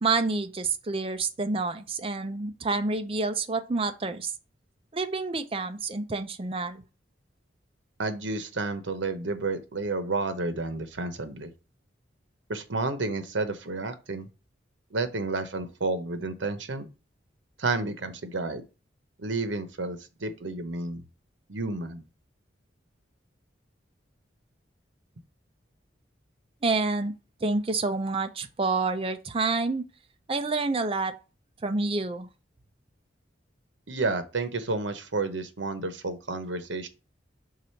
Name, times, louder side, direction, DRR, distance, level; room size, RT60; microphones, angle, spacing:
voice 1, 0.0-4.3 4.9-6.8 26.6-27.1 27.4-29.8 30.3-31.1 31.6-32.3, right 3 dB, 30° right, 0.5 m, -28 dB
voice 2, 8.0-11.5 12.5-14.3 14.9-16.9 17.6-18.6 19.2-21.0 21.5-22.0 33.9-36.9, right 3 dB, 80° right, 0.9 m, -31 dB
4.8 x 3.9 x 5.6 m
head